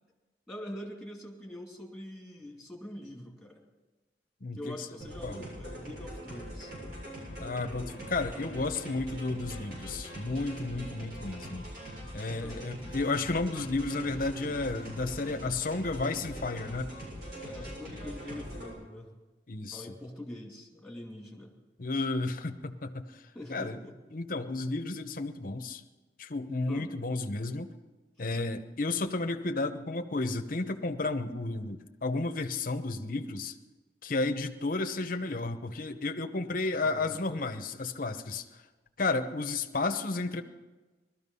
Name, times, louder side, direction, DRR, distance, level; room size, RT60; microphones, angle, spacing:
voice 1, 0.5-3.6 4.6-6.7 12.4-12.6 17.4-19.1 19.7-21.5 23.3-24.0 26.7-26.9 28.2-28.3 36.8-37.5, left 1 dB, ahead, -1 dB, 2.5 m, -44 dB
voice 2, 4.4-4.7 5.2-5.5 7.4-11.6 12.1-16.9 19.5-19.9 21.8-23.2 23.5-23.8 24.1-25.8 26.2-27.7 28.2-33.5 34.0-38.4 39.0-40.4, left 3 dB, 50° left, 8 dB, 0.9 m, -32 dB
sound 1, 5.0-18.7, equal, 60° right, 7.3 m, -42 dB
19.0 x 13.5 x 5.5 m, 1.2 s
head